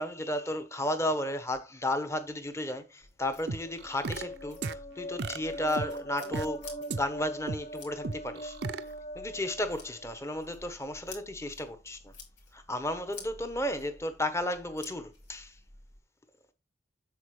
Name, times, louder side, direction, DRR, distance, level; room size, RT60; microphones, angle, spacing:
voice 1, 0.0-8.6 9.1-12.1 12.5-15.5, left 1 dB, 15° left, 1.2 m, -33 dB
sound 1, 3.0-16.0, left 3 dB, 65° left, 3.5 m, -52 dB
sound 2, 3.5-4.2 4.6-4.7 5.2-6.5 6.9-7.0 7.5-7.6 8.0-8.8, right 3 dB, 60° right, 0.6 m, -34 dB
sound 3, 3.6-10.4, equal, 50° left, 1.9 m, -42 dB
8.3 x 7.0 x 3.3 m
head